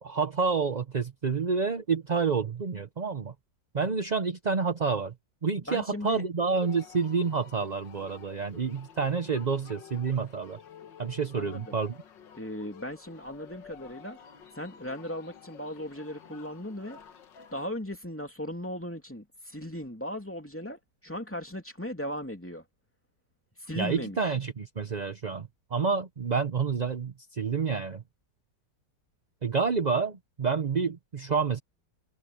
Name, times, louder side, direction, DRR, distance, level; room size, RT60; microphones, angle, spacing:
voice 1, 0.0-3.3 3.7-5.1 5.4-10.6 11.0-12.0 23.7-28.0 29.4-31.6, right 5 dB, 40° right, 0.6 m, -29 dB
voice 2, 5.7-6.3 11.3-11.8 12.4-14.2 14.5-17.0 17.5-22.6 23.6-24.3, left 1 dB, 5° left, 2.7 m, -37 dB
sound 1, 6.6-17.7, left 8 dB, 80° left, 2.1 m, -51 dB
omnidirectional pair, 1.9 m